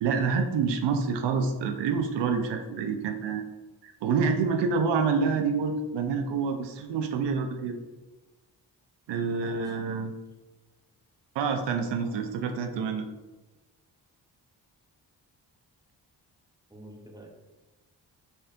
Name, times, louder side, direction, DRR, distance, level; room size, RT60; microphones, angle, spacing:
voice 1, 0.0-3.4 3.8-7.8 9.1-10.1 11.4-13.1, right 5 dB, 80° right, 6 dB, 0.5 m, -27 dB
voice 2, 9.3-9.6 11.7-12.2 16.7-17.3, right 1 dB, 10° right, 1 dB, 0.7 m, -49 dB
4.2 x 3.3 x 2.5 m, 1.1 s
cardioid pair, 65°, 42 cm